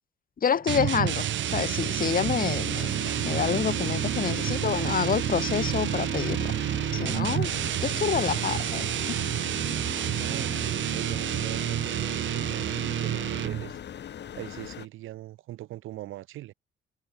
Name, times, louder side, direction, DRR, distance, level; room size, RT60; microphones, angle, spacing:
voice 1, 0.4-1.3 1.5-6.5 6.9-7.5 7.8-9.2, left 7 dB, 45° left, 1.6 m, -28 dB
sound 1, 0.7-13.7, right 11 dB, 70° right, 3.7 m, -29 dB
sound 2, 2.7-14.9, left 9 dB, 60° left, 3.7 m, -41 dB
voice 2, 10.2-13.8 14.3-16.5, right 15 dB, 90° right, 6.0 m, -41 dB
cardioid pair, 90°, 20 cm